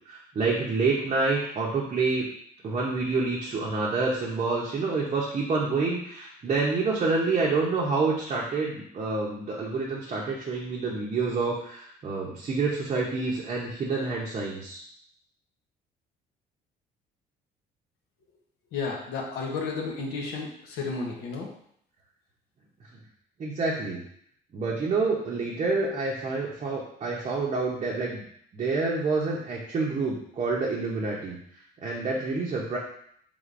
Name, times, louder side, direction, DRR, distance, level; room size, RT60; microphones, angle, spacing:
voice 1, 0.1-2.2 2.6-14.8 23.4-24.0 24.5-28.2 28.5-31.4 31.8-32.8, right 3 dB, 40° right, -4 dB, 0.7 m, -28 dB
voice 2, 18.7-21.5, left 4 dB, 80° left, -1 dB, 0.8 m, -32 dB
3.5 x 3.3 x 2.5 m, 0.67 s
cardioid pair, 110°, 17 cm